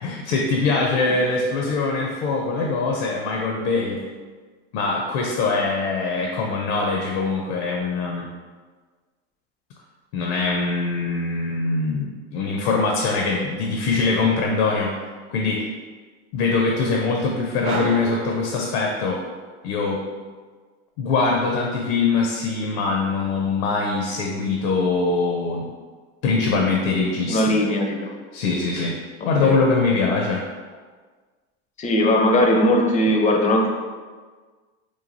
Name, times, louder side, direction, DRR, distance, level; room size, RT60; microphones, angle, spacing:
voice 1, 0.0-4.0 4.7-8.3 10.1-15.0 15.3-15.7 16.3-19.2 19.6-20.0 21.0-25.7 26.2-27.6 28.3-29.0 29.2-30.4, left 3 dB, 75° left, 0 dB, 0.5 m, -23 dB
sound 1, 17.6-19.4, right 3 dB, 45° right, 0.5 m, -31 dB
voice 2, 27.3-28.1 29.4-29.6 31.8-33.7, left 1 dB, 25° left, 1 dB, 0.4 m, -19 dB
3.1 x 2.3 x 2.5 m, 1.5 s
supercardioid pair, 105°, 33 cm